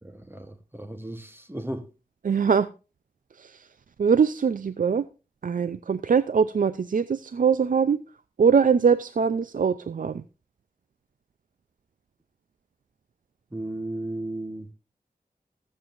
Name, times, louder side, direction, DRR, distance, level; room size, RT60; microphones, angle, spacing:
voice 1, 0.0-1.9 13.5-14.7, right 1 dB, 15° right, 1.1 m, -35 dB
voice 2, 2.2-2.7 3.4-3.5 4.0-5.0 5.4-8.0 8.4-10.2, right 6 dB, 70° right, 0.5 m, -22 dB
20.5 x 7.5 x 2.5 m
wide cardioid pair, 65°, 14 cm